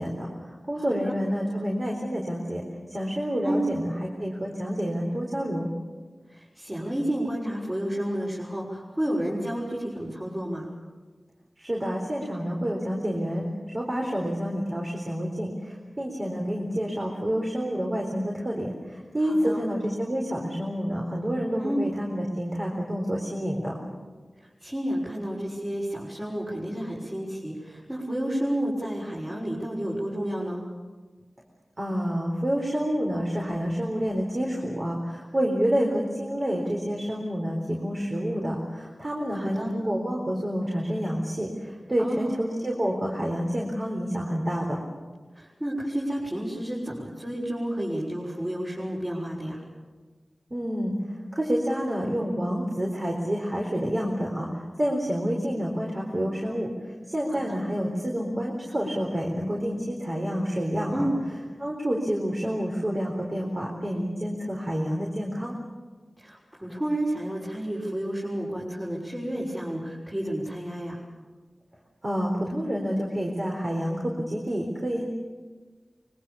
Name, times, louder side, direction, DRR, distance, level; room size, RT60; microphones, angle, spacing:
voice 1, 0.0-2.6 2.9-3.9 4.2-5.7 11.6-13.5 13.7-23.8 31.8-44.8 50.5-50.9 51.3-54.5 54.8-61.1 61.6-65.5 72.0-75.1, equal, 35° right, -2 dB, 4.2 m, -28 dB
voice 2, 0.8-1.1 3.4-3.8 6.3-10.7 19.2-19.6 21.6-21.8 24.4-30.6 39.3-39.7 42.0-42.3 45.3-49.6 57.3-57.6 60.9-61.2 66.2-71.0, right 1 dB, 20° right, -7 dB, 6.4 m, -31 dB
24.5 x 23.0 x 7.2 m, 1.4 s
wide cardioid pair, 75°, 0 cm